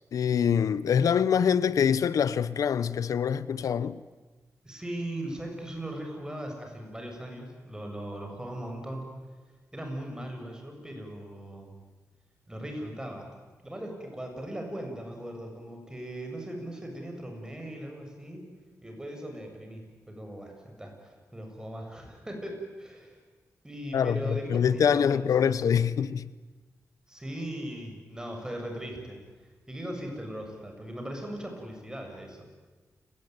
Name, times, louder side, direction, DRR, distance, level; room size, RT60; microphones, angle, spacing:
voice 1, 0.1-4.0 23.9-26.3, left 7 dB, 85° left, 0.8 m, -25 dB
voice 2, 4.6-9.1 9.7-11.7 12.5-13.3 13.6-18.4 18.8-23.2 23.6-25.5 27.1-29.2 29.7-32.5, right 1 dB, 10° right, 7.6 m, -39 dB
29.5 x 19.5 x 9.5 m
wide cardioid pair, 95°, 6 cm